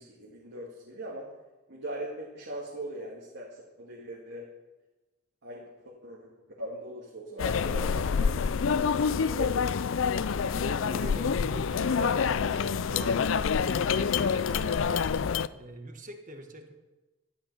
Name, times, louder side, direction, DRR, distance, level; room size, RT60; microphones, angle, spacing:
voice 1, 0.0-1.3 1.7-4.5 5.4-9.9, right 1 dB, 60° right, -3 dB, 2.2 m, -41 dB
sound 1, 7.4-15.5, left 6 dB, 65° left, 0.4 m, -27 dB
voice 2, 10.6-14.8 15.5-16.7, right 1 dB, 40° right, 5 dB, 1.5 m, -43 dB
12.5 x 11.5 x 5.7 m, 1.1 s
head